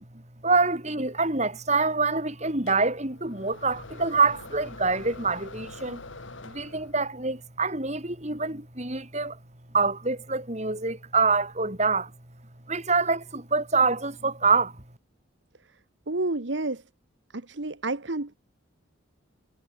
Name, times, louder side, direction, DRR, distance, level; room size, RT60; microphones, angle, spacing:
voice 1, 0.4-6.0 6.4-9.4 9.7-12.1 12.7-14.8, right 4 dB, 35° right, 4.3 m, -25 dB
sound 1, 2.7-7.2, left 2 dB, 75° left, 4.5 m, -44 dB
voice 2, 16.1-16.8 17.3-18.4, right 2 dB, 65° right, 1.3 m, -30 dB
head